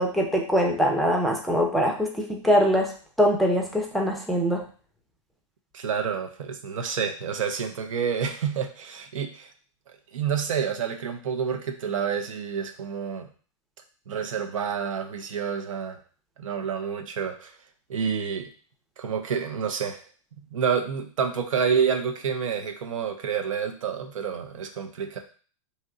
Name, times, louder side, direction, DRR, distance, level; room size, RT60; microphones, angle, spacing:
voice 1, 0.0-2.9 3.2-4.6, equal, ahead, 0 dB, 0.5 m, -23 dB
voice 2, 5.7-9.5 10.1-13.3 14.1-16.0 16.4-17.5 17.9-18.5 19.0-20.0 20.4-25.2, right 7 dB, 80° right, 5 dB, 0.6 m, -28 dB
2.8 x 2.1 x 3.6 m, 0.41 s
hypercardioid pair, 120°, 16 cm